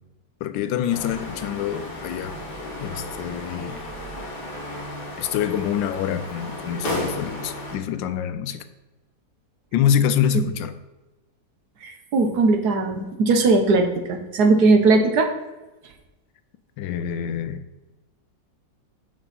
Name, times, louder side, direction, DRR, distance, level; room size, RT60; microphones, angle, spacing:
voice 1, 0.4-2.4 2.8-3.8 5.2-8.6 9.7-10.7 16.8-17.6, left 9 dB, 85° left, 1.3 m, -25 dB
sound 1, 0.9-7.8, left 1 dB, 60° left, 2.3 m, -34 dB
voice 2, 11.8-15.3, right 3 dB, 65° right, 1.3 m, -19 dB
6.3 x 6.2 x 4.1 m
omnidirectional pair, 2.0 m